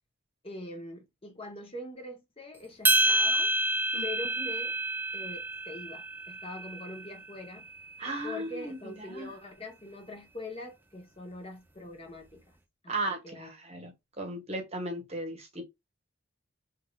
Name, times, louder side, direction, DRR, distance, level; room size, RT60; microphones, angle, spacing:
voice 1, 0.4-3.5 4.0-4.8 5.1-7.7 8.2-12.6 12.8-12.9 13.2-13.5, left 1 dB, 25° left, 0.9 m, -43 dB
sound 1, 2.8-7.3, right 1 dB, 10° right, 0.4 m, -28 dB
voice 2, 8.0-9.3 12.9-13.9 14.2-15.6, right 1 dB, 30° right, 1.0 m, -36 dB
3.6 x 3.2 x 2.3 m
head